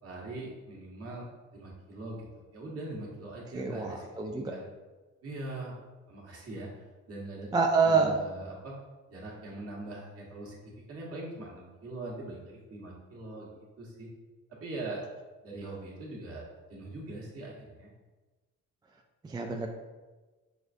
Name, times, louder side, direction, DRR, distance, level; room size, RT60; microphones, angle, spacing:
voice 1, 0.0-2.3 2.5-4.7 5.2-5.8 6.1-6.8 7.1-7.5 7.8-8.8 9.1-10.6 10.9-14.1 14.6-15.0 15.4-16.4 16.7-17.9, right 2 dB, 50° right, -4 dB, 1.4 m, -42 dB
voice 2, 3.5-4.5 7.5-8.2 19.2-19.7, right 4 dB, 15° right, 2 dB, 0.3 m, -27 dB
6.2 x 2.5 x 2.6 m, 1.2 s
cardioid pair, 90°, 30 cm